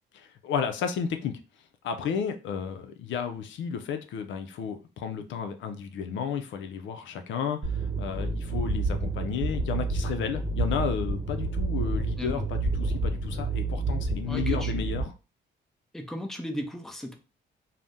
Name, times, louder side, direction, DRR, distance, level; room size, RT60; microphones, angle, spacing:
voice 1, 0.2-1.3 1.8-15.1, left 7 dB, 70° left, 7 dB, 0.5 m, -32 dB
sound 1, 7.6-15.0, right 3 dB, 35° right, 0.9 m, -29 dB
voice 2, 14.3-14.9 15.9-17.1, equal, ahead, 3 dB, 0.6 m, -36 dB
2.6 x 2.1 x 3.5 m, 0.32 s
cardioid pair, 90°, 20 cm